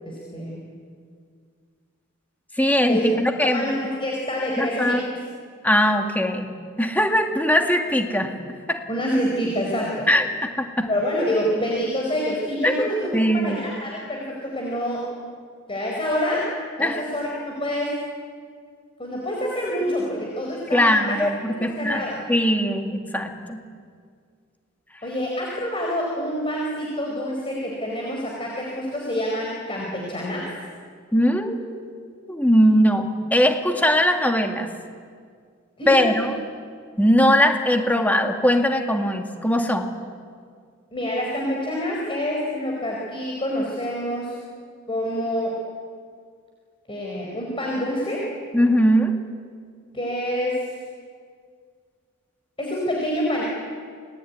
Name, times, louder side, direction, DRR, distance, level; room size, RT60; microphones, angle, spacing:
voice 1, 0.0-0.6 2.9-3.0 3.4-5.0 8.9-10.1 10.9-15.0 15.7-16.5 16.8-17.9 19.0-21.2 21.5-22.1 25.0-30.5 35.8-36.3 40.9-44.4 44.9-45.6 46.9-48.3 49.9-50.7 52.6-53.4, equal, 25° left, -2 dB, 4.7 m, -27 dB
voice 2, 2.6-3.6 4.6-5.0 5.6-6.5 6.8-8.3 8.7-8.8 10.1-10.9 12.6-13.6 16.8-17.0 20.7-22.0 22.3-23.6 31.1-31.8 32.3-34.7 35.9-36.3 37.0-39.9 48.5-49.2, equal, 10° left, 4 dB, 2.3 m, -20 dB
28.5 x 19.5 x 9.6 m, 2.1 s
head